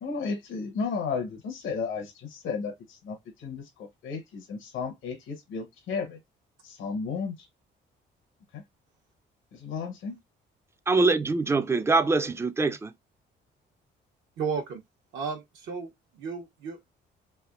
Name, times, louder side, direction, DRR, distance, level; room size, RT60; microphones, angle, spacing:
voice 1, 0.0-6.2 6.6-7.5 8.5-8.6 9.5-10.2, left 5 dB, 80° left, 0.9 m, -34 dB
voice 2, 10.9-12.9, right 3 dB, 15° right, 0.4 m, -24 dB
voice 3, 14.4-14.8 15.1-16.9, right 5 dB, 75° right, 0.9 m, -34 dB
3.3 x 2.6 x 2.4 m
cardioid pair, 90°, 20 cm